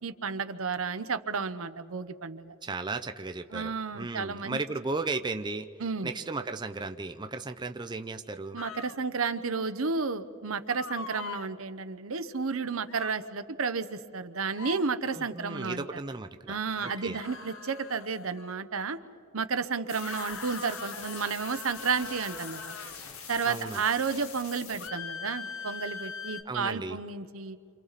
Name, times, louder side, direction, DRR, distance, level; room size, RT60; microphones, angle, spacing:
voice 1, 0.0-2.5 3.5-4.6 5.8-6.1 8.5-15.9 16.5-19.0 19.3-22.8 23.3-27.6, right 5 dB, 70° right, 10 dB, 0.9 m, -32 dB
voice 2, 2.6-5.7 6.0-8.6 15.2-17.2 23.4-23.8 26.5-27.0, right 3 dB, 20° right, 7 dB, 0.6 m, -35 dB
sound 1, 8.6-9.0 10.7-11.5 12.9-13.2 14.5-14.9 16.7-18.6 19.9-23.0 24.8-26.4, left 5 dB, 65° left, 1.0 m, -41 dB
sound 2, 19.9-24.9, left 6 dB, 80° left, 1.9 m, -44 dB
29.0 x 27.0 x 4.2 m, 2.4 s
head